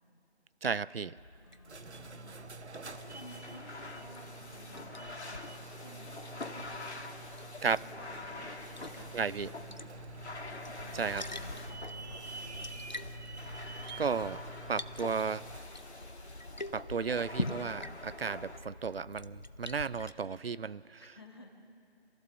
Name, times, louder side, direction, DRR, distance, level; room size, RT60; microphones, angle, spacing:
voice 1, 0.6-1.1 7.6-7.8 9.1-9.5 10.9-11.2 14.0-14.4 14.7-15.4 16.7-21.0, right 5 dB, 60° right, 19 dB, 0.5 m, -33 dB
Liquid, 1.2-20.1, left 2 dB, 45° left, 0.6 m, -46 dB
voice 2, 1.4-2.5 2.8-6.9 8.0-12.7 21.2-21.5, left 1 dB, 25° left, 0 dB, 1.5 m, -55 dB
sound 1, 1.5-15.8, right 3 dB, 85° right, 1.2 m, -48 dB
sound 2, 2.9-18.6, left 2 dB, 80° left, 2.3 m, -46 dB
27.5 x 15.0 x 7.1 m, 2.6 s
figure-of-eight pair, 180°, 33 cm